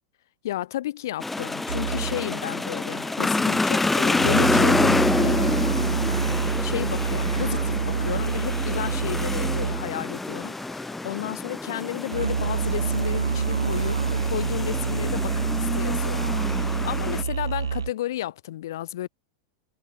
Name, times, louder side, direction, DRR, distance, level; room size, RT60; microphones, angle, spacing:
voice 1, 0.4-6.0 6.6-19.1, left 14 dB, 60° left, 3.3 m, -33 dB
sound 1, 1.2-17.2, left 2 dB, 10° left, 2.0 m, -27 dB
sound 2, 1.7-10.1 12.1-17.9, right 6 dB, 75° right, 0.4 m, -27 dB
figure-of-eight pair, 85°, 2 cm